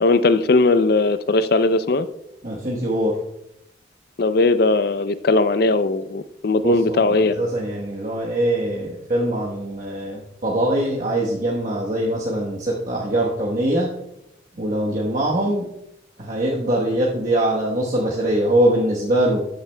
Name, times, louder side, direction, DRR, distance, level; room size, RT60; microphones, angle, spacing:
voice 1, 0.0-2.1 4.2-7.5, left 3 dB, 50° left, 13 dB, 0.4 m, -18 dB
voice 2, 2.4-3.2 6.6-13.9 14.6-15.6 16.2-19.4, right 1 dB, 40° right, -4 dB, 1.1 m, -22 dB
13.5 x 9.3 x 2.2 m, 0.82 s
head